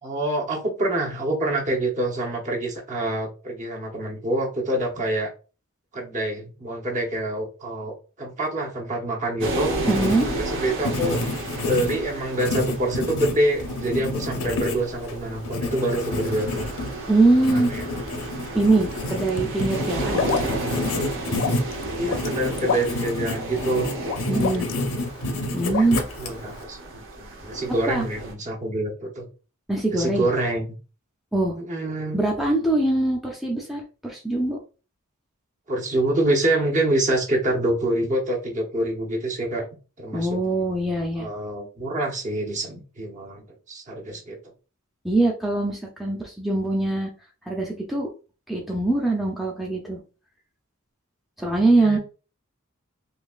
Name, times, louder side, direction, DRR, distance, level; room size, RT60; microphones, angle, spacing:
voice 1, 0.0-5.3 5.9-9.7 10.4-11.2 11.7-16.7 17.5-17.8 19.2-19.4 21.9-23.9 24.2-24.7 25.8-29.3 29.9-30.7 31.6-32.2 35.7-39.7 40.0-40.3 41.2-44.4 51.8-52.0, right 1 dB, 35° right, 0 dB, 0.9 m, -26 dB
sound 1, 9.4-28.3, right 2 dB, 60° right, 0.9 m, -33 dB
Writing, 9.5-26.6, left 2 dB, 85° left, 0.7 m, -30 dB
voice 2, 9.9-10.3 17.1-17.7 18.5-20.2 24.3-24.7 25.5-26.0 27.9-28.0 29.7-30.3 31.3-31.6 32.1-34.6 40.1-41.3 45.0-47.1 47.5-48.1 48.5-50.0 51.4-52.0, right 2 dB, ahead, -2 dB, 0.5 m, -22 dB
sound 2, 18.7-19.4 20.1-20.5 20.8-20.9 21.4-22.3 22.6-23.1 24.1-24.8 25.7-25.8, left 6 dB, 60° left, 0.3 m, -28 dB
4.0 x 2.8 x 2.4 m, 0.34 s
head